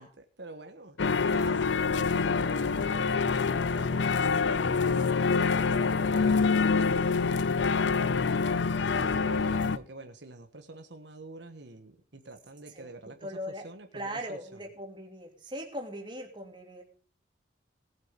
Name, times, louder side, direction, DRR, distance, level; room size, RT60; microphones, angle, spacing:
voice 1, 0.0-8.0 8.9-14.7, right 2 dB, 65° right, 6 dB, 1.5 m, -48 dB
sound 1, 1.0-9.8, left 4 dB, 70° left, 0.6 m, -26 dB
voice 2, 13.2-13.6 13.9-16.8, equal, 25° right, 3 dB, 2.7 m, -39 dB
18.5 x 7.8 x 5.3 m, 0.41 s
head